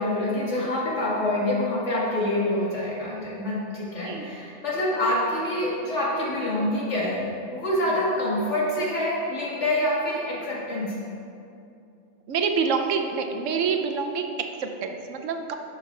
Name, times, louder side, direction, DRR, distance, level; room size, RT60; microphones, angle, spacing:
voice 1, 0.0-7.2 7.5-11.0, left 1 dB, 70° left, -6 dB, 2.2 m, -26 dB
voice 2, 12.3-15.5, right 5 dB, 80° right, 5 dB, 1.1 m, -27 dB
11.5 x 6.2 x 3.2 m, 2.6 s
omnidirectional pair, 1.3 m